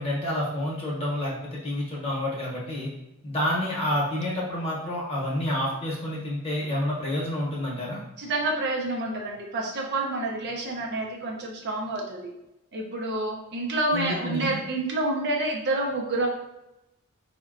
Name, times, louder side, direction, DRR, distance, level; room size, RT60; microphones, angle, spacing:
voice 1, 0.0-2.9 3.2-8.0 13.9-14.5, left 1 dB, 30° left, -5 dB, 0.9 m, -29 dB
voice 2, 8.2-12.3 12.7-16.3, right 2 dB, 50° right, 0 dB, 0.5 m, -28 dB
3.7 x 2.1 x 2.5 m, 0.92 s
head